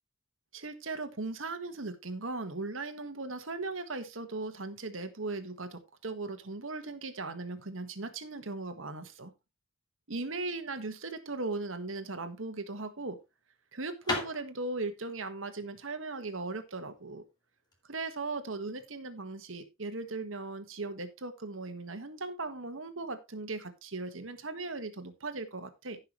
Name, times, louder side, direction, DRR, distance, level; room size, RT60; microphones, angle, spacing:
voice 1, 0.5-9.3 10.1-13.2 13.7-17.2 17.9-26.0, right 3 dB, 75° right, 9 dB, 1.5 m, -38 dB
sound 1, 12.3-17.8, left 1 dB, 20° left, 2.5 m, -40 dB
16.0 x 5.8 x 3.1 m, 0.24 s
head